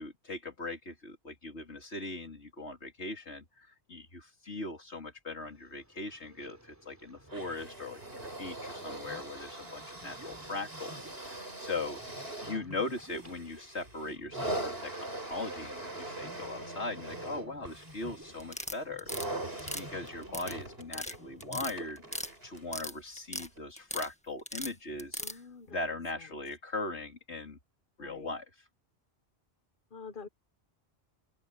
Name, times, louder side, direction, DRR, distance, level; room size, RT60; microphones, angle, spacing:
voice 1, 0.0-12.0 12.4-19.1 19.6-27.6 28.0-28.7, left 2 dB, 85° left, 4.2 m, -40 dB
sound 1, 5.4-21.9, equal, 15° right, 3.3 m, -54 dB
sound 2, 7.3-22.7 23.6-23.7, right 1 dB, 65° right, 6.0 m, -42 dB
voice 2, 16.3-16.8 25.2-25.7 28.0-28.3 29.9-30.3, left 5 dB, 50° left, 1.3 m, -47 dB
sound 3, 18.4-19.3 19.6-20.5 20.8-21.1 21.4-22.3 22.6-23.5 23.8-24.1 24.5-25.3, left 1 dB, 5° left, 1.5 m, -38 dB
open air
omnidirectional pair, 1.1 m